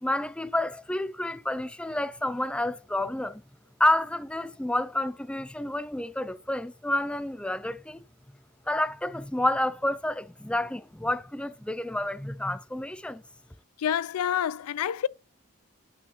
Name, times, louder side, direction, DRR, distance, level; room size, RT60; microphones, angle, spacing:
voice 1, 0.0-3.4 3.8-8.0 8.7-13.2, left 1 dB, 5° left, 0.4 m, -29 dB
voice 2, 13.8-15.1, left 9 dB, 85° left, 0.4 m, -27 dB
8.8 x 5.8 x 3.2 m
head